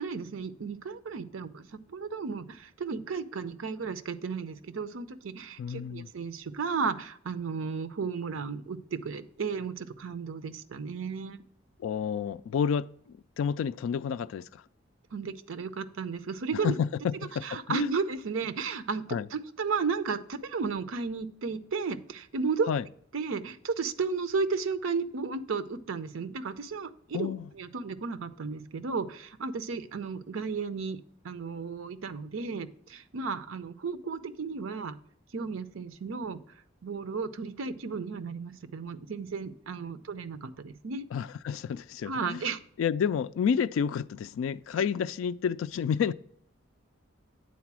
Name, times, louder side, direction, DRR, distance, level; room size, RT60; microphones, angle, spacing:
voice 1, 0.0-11.4 15.1-16.8 17.4-19.0 19.3-22.7 23.1-31.0 31.2-35.0 35.3-36.4 36.8-41.1 42.1-42.6, right 5 dB, 85° right, 0.6 m, -34 dB
voice 2, 5.6-6.1 11.8-14.6 16.5-17.9 19.1-19.3 22.7-22.9 27.1-27.5 41.1-42.4 42.8-46.1, left 7 dB, 85° left, 0.3 m, -30 dB
8.5 x 4.0 x 6.0 m
head